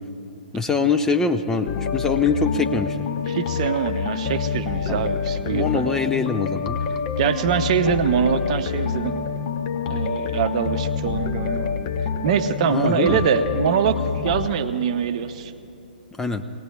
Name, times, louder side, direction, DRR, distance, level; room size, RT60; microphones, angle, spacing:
voice 1, 0.5-3.1 4.9-5.0 5.5-6.8 12.7-13.2 16.2-16.4, left 4 dB, 10° left, 7 dB, 0.4 m, -23 dB
sound 1, 1.7-14.5, left 6 dB, 45° left, 0.9 m, -27 dB
voice 2, 3.3-5.8 7.2-9.2 9.9-11.8 12.2-15.5, right 8 dB, 45° right, 10 dB, 0.7 m, -23 dB
25.0 x 18.5 x 2.4 m, 2.7 s
figure-of-eight pair, 120°, 5 cm